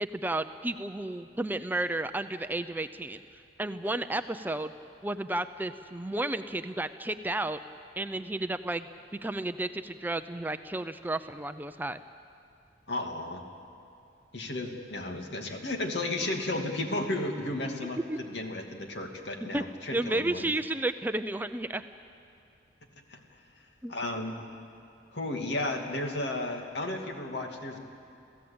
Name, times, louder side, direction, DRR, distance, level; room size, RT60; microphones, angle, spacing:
voice 1, 0.0-3.2 3.6-4.7 5.0-7.6 8.0-8.9 9.2-12.0 18.1-18.2 19.5-19.6 19.9-21.8 23.8-23.9, right 2 dB, 10° right, 10 dB, 0.5 m, -32 dB
voice 2, 12.9-13.4 14.3-18.0 18.3-20.5 23.1-23.2 23.9-24.4 25.1-27.8, left 2 dB, 65° left, 3 dB, 2.5 m, -33 dB
28.0 x 16.0 x 8.7 m, 2.5 s
head